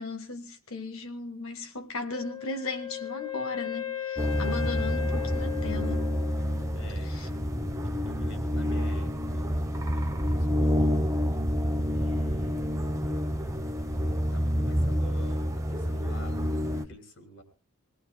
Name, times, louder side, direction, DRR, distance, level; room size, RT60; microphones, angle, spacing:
voice 1, 0.0-6.0 7.0-7.3, left 3 dB, 75° left, 1.5 m, -37 dB
Wind instrument woodwind instrument, 2.1-7.0, left 10 dB, 25° left, 2.1 m, -36 dB
sound 1, 4.2-16.9, equal, 15° right, 1.0 m, -28 dB
voice 2, 6.7-7.3 8.0-9.6 9.9-11.1 11.9-12.8 14.3-17.4, equal, 60° left, 3.2 m, -48 dB
26.0 x 18.5 x 2.2 m
head